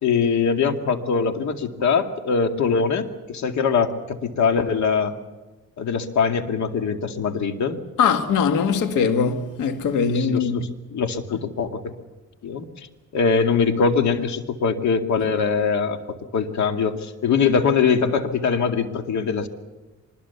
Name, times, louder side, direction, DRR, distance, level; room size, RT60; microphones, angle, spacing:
voice 1, 0.0-5.1 5.8-7.8 9.9-11.9 12.4-12.9 13.1-16.0 16.3-19.5, left 5 dB, 65° left, 2.3 m, -22 dB
voice 2, 8.0-10.7, left 6 dB, 85° left, 1.9 m, -21 dB
24.5 x 21.0 x 7.1 m
cardioid pair, 90°, 30 cm